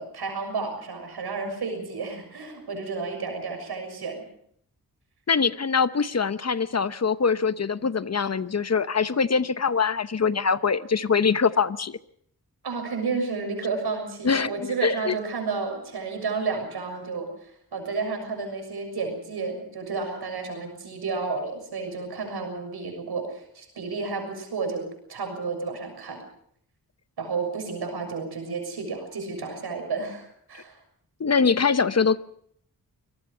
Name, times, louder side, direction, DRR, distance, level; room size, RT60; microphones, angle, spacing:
voice 1, 0.0-4.2 12.6-26.2 27.2-30.8, right 4 dB, 85° right, 6.6 m, -31 dB
voice 2, 5.3-12.0 14.2-14.5 14.8-15.2 30.5-30.6 31.2-32.2, left 5 dB, 40° left, 0.9 m, -23 dB
25.0 x 18.5 x 5.6 m
cardioid pair, 60°, 38 cm